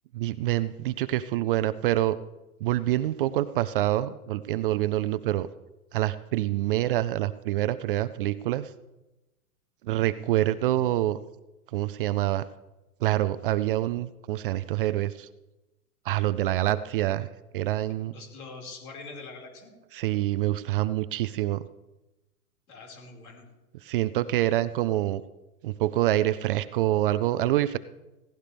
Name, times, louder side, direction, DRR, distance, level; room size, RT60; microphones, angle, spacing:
voice 1, 0.1-2.2 2.6-5.5 5.9-8.7 9.8-11.2 11.7-12.5 13.0-15.3 16.1-17.3 17.5-18.1 19.9-21.6 23.8-25.2 25.6-27.8, right 14 dB, 40° right, 15 dB, 0.4 m, -26 dB
voice 2, 18.1-19.7 22.7-23.4, left 3 dB, 70° left, 0 dB, 5.2 m, -43 dB
17.0 x 16.0 x 3.4 m, 1.0 s
hypercardioid pair, 125°, 45 cm